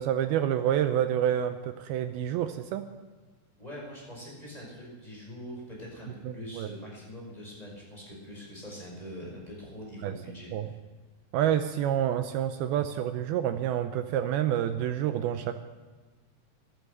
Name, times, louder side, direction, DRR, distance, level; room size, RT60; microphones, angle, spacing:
voice 1, 0.0-2.8 6.5-6.7 10.0-10.2 10.5-10.7 11.3-15.6, right 10 dB, 80° right, 8 dB, 2.4 m, -28 dB
voice 2, 3.6-10.8, equal, 10° left, -4 dB, 5.4 m, -43 dB
15.0 x 12.5 x 6.7 m, 1.3 s
omnidirectional pair, 4.8 m